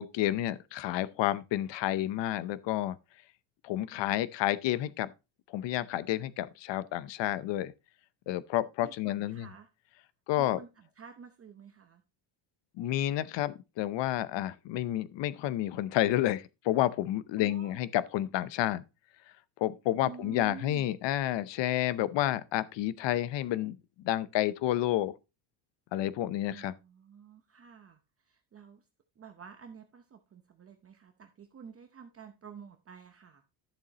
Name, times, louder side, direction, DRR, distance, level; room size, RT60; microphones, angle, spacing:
voice 1, 0.0-3.0 3.6-5.1 5.5-7.7 8.3-9.5 10.3-10.6 12.8-18.8 19.6-23.8 24.0-25.1 25.9-26.7, left 13 dB, 60° left, 0.7 m, -30 dB
voice 2, 8.8-9.7 10.3-12.0 17.4-17.8 20.0-20.9 26.5-28.9 29.2-33.4, right 6 dB, 30° right, 0.8 m, -50 dB
11.0 x 7.0 x 2.9 m
cardioid pair, 125°, 48 cm